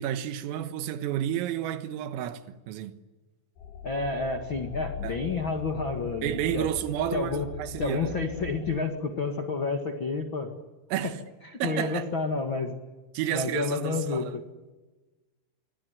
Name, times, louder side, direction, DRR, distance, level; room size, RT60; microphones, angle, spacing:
voice 1, 0.0-2.9 5.0-5.2 6.2-8.1 10.9-11.2 11.6-12.1 13.2-14.4, right 11 dB, 90° right, 4.0 m, -31 dB
sound 1, 3.6-8.8, left 6 dB, 60° left, 4.7 m, -40 dB
voice 2, 3.8-6.7 7.1-7.5 7.8-10.5 11.0-11.1 11.4-12.7 13.3-14.2, left 4 dB, 80° left, 1.1 m, -30 dB
25.5 x 23.0 x 9.6 m
omnidirectional pair, 5.9 m